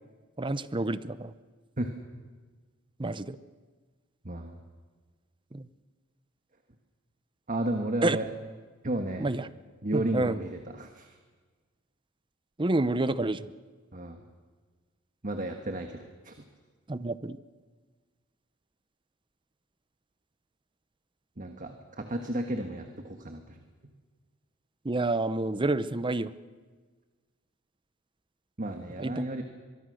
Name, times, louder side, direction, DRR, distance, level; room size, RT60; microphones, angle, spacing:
voice 1, 0.4-1.3 3.0-3.4 5.5-5.7 8.0-8.2 9.2-9.5 9.9-10.4 12.6-13.5 16.9-17.4 24.8-26.3 29.0-29.2, right 2 dB, 25° right, 15 dB, 0.7 m, -28 dB
voice 2, 4.2-4.6 7.5-8.3 8.8-9.3 9.8-11.1 13.9-14.2 15.2-16.3 21.4-23.6 28.6-29.4, right 1 dB, 40° right, 5 dB, 1.4 m, -33 dB
24.0 x 23.0 x 6.5 m, 1.5 s
head